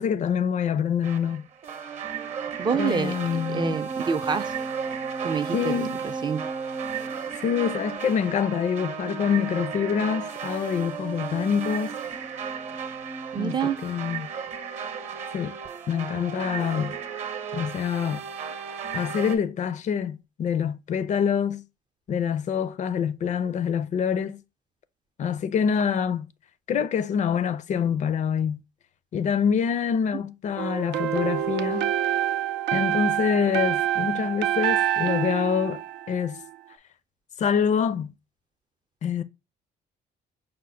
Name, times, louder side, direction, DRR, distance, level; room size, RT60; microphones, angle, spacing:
voice 1, 0.0-1.4 2.8-3.8 5.5-6.0 7.4-11.9 13.4-14.3 15.3-15.6 15.9-17.0 17.5-18.2 18.9-21.6 22.1-24.4 25.2-26.3 26.7-28.6 29.1-31.9 32.7-35.8 36.1-36.4 37.4-38.1 39.0-39.2, left 7 dB, 45° left, 0.4 m, -26 dB
sound 1, 1.0-19.4, right 6 dB, 40° right, 0.8 m, -34 dB
voice 2, 2.6-3.2 3.5-4.5 5.2-6.5 13.3-13.8, right 6 dB, 25° right, 0.4 m, -27 dB
sound 2, 30.6-36.5, right 12 dB, 90° right, 0.5 m, -27 dB
5.0 x 2.1 x 4.3 m
cardioid pair, 110°, 17 cm